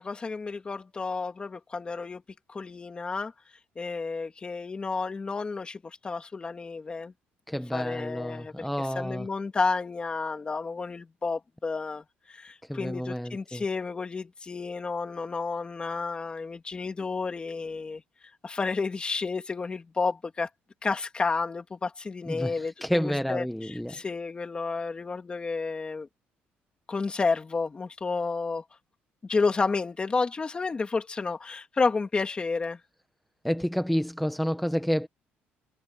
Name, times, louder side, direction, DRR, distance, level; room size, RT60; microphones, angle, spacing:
voice 1, 0.0-2.2 2.5-3.3 3.8-7.1 7.7-8.5 9.0-12.0 12.3-18.0 18.4-20.5 20.8-22.7 23.3-26.1 26.9-28.6 29.2-32.8, left 4 dB, 25° left, 2.5 m, -31 dB
voice 2, 7.5-9.3 12.6-13.6 22.2-24.0 33.4-35.1, equal, ahead, 0.9 m, -29 dB
cardioid pair, 115°, 4 cm